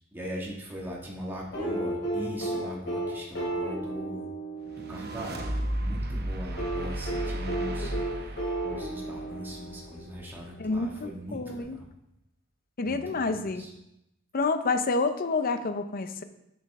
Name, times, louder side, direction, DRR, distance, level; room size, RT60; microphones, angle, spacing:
voice 1, 0.1-4.3 4.9-11.9 12.8-13.7, equal, 10° right, -4 dB, 1.7 m, -40 dB
sound 1, 1.5-5.6 6.6-10.2 11.6-11.7, right 2 dB, 60° left, 3.2 m, -33 dB
sound 2, 4.6-10.0, right 1 dB, 50° right, 0.9 m, -34 dB
voice 2, 10.6-11.8 12.8-13.6 14.3-16.2, left 3 dB, 45° left, 9 dB, 0.6 m, -29 dB
7.9 x 7.4 x 3.6 m, 0.84 s
head